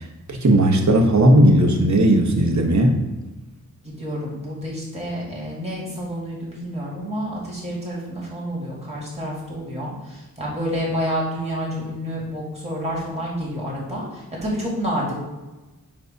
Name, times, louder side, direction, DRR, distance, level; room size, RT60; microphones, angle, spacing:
voice 1, 0.0-3.0, right 1 dB, 50° right, 2 dB, 1.0 m, -16 dB
voice 2, 3.8-15.1, equal, 20° right, -5 dB, 2.1 m, -29 dB
7.5 x 2.6 x 5.1 m, 1.1 s
wide cardioid pair, 115°, 36 cm